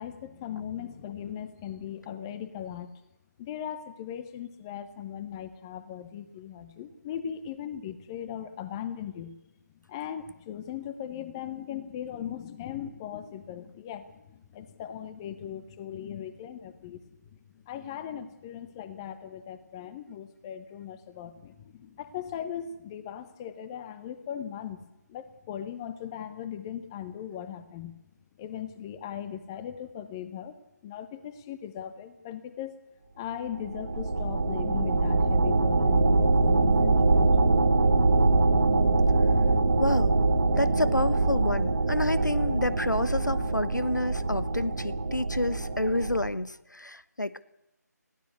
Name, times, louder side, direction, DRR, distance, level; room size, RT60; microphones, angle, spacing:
voice 1, 0.0-2.9 3.4-9.4 9.9-17.1 17.5-24.8 25.1-27.9 28.4-30.6 30.8-32.8 33.2-37.4, left 9 dB, 15° left, 13 dB, 0.8 m, -38 dB
sound 1, 33.5-46.3, right 3 dB, 45° right, 2.1 m, -24 dB
voice 2, 39.8-40.1 40.5-47.4, left 1 dB, 85° left, 17 dB, 1.1 m, -29 dB
20.5 x 15.5 x 8.3 m, 0.88 s
figure-of-eight pair, 155°, 10 cm